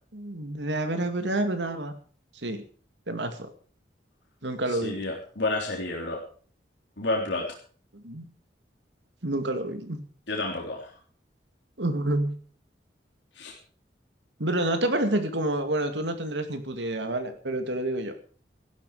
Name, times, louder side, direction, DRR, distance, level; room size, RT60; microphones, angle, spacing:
voice 1, 0.1-2.0 2.4-2.6 3.1-3.5 4.4-5.0 7.9-8.3 9.2-10.0 11.8-12.4 14.4-18.1, right 1 dB, 85° right, 7 dB, 2.4 m, -28 dB
voice 2, 4.7-6.2 7.0-7.5 10.3-10.9 13.4-13.5, left 2 dB, 90° left, -1 dB, 3.5 m, -30 dB
16.0 x 12.0 x 5.0 m, 0.44 s
head